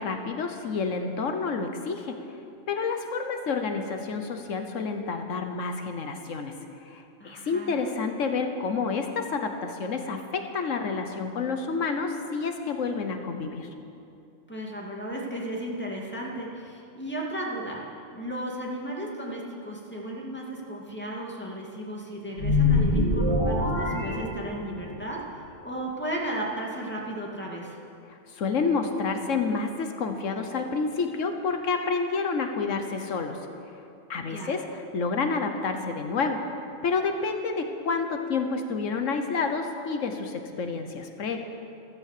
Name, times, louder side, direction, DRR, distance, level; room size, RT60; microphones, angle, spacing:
voice 1, 0.0-2.2 2.7-6.5 6.8-13.7 28.1-33.4 34.1-36.4 36.8-41.4, left 4 dB, 80° left, 6 dB, 1.4 m, -29 dB
voice 2, 7.2-7.8 14.5-27.8 34.1-34.5, right 1 dB, 10° left, -2 dB, 2.4 m, -35 dB
sound 1, 22.4-24.9, left 2 dB, 50° right, 3.4 m, -24 dB
14.5 x 14.0 x 6.7 m, 2.6 s
omnidirectional pair, 1.3 m